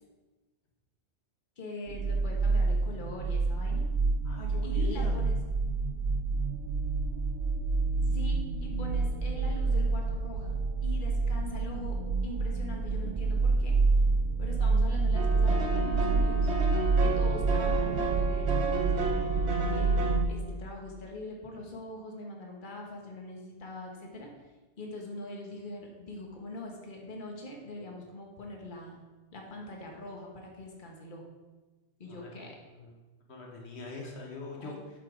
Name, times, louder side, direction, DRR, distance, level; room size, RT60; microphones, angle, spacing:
voice 1, 1.6-3.8 4.6-5.3 8.1-10.5 10.8-12.0 12.2-13.8 14.4-16.5 17.0-19.3 19.7-19.9 20.3-24.3 24.8-29.0 29.3-31.3 32.0-32.6 34.6-34.8, left 1 dB, 50° left, 0 dB, 1.5 m, -42 dB
sound 1, 1.9-20.3, right 3 dB, 55° right, 0.8 m, -28 dB
voice 2, 4.2-5.2 32.1-32.9 33.3-34.7, left 3 dB, 75° left, 0 dB, 1.4 m, -42 dB
sound 2, 15.1-20.2, right 4 dB, 75° right, 1.2 m, -32 dB
7.8 x 5.9 x 4.9 m, 1.2 s
omnidirectional pair, 1.1 m